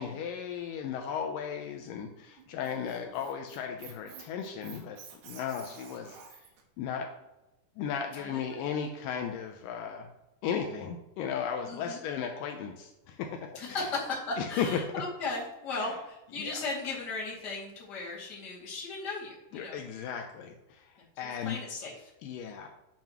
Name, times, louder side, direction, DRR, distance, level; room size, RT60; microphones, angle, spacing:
voice 1, 0.0-5.0 5.2-6.4 6.8-7.1 7.8-10.1 10.4-13.4 13.7-13.8 14.4-14.8 15.8-15.9 16.4-16.6 19.5-21.6 22.2-22.7, left 7 dB, 90° left, 4 dB, 1.9 m, -35 dB
Squeak, 2.4-6.6, right 6 dB, 80° right, 3.3 m, -50 dB
voice 2, 2.7-3.1 8.2-8.7 11.6-12.0 13.5-19.8 21.2-21.9 22.4-22.5, left 3 dB, 30° left, -5 dB, 2.2 m, -37 dB
9.6 x 7.4 x 3.0 m, 0.95 s
omnidirectional pair, 4.7 m